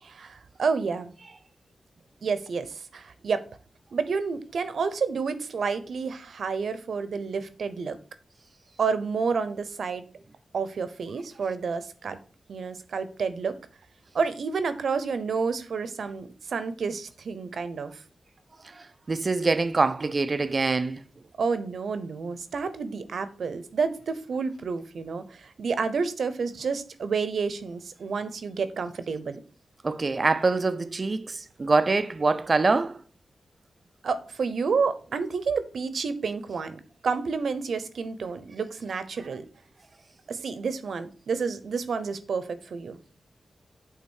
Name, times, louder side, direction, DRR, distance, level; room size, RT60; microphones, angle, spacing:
voice 1, 0.0-1.1 2.2-3.5 3.9-8.0 8.8-10.1 10.5-12.2 12.5-13.6 14.1-18.0 21.4-29.4 34.0-39.5 40.3-43.0, right 5 dB, 75° right, 0.8 m, -30 dB
voice 2, 18.6-21.0 29.8-33.0, right 3 dB, 30° right, 0.5 m, -25 dB
8.7 x 3.6 x 6.4 m
wide cardioid pair, 165°, 0 cm